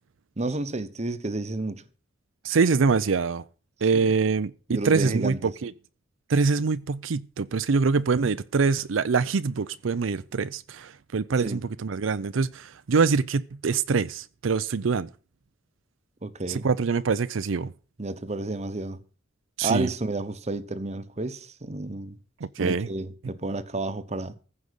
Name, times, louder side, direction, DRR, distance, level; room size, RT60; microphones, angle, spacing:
voice 1, 0.4-1.8 3.9-4.2 4.7-5.5 11.4-11.6 16.2-16.7 18.0-19.0 19.6-22.2 22.6-24.3, right 2 dB, 35° right, 1.0 m, -31 dB
voice 2, 2.4-3.4 3.8-5.7 6.3-15.1 16.5-17.7 19.6-19.9 22.6-22.9, right 4 dB, 85° right, 0.5 m, -24 dB
15.0 x 5.3 x 8.0 m
head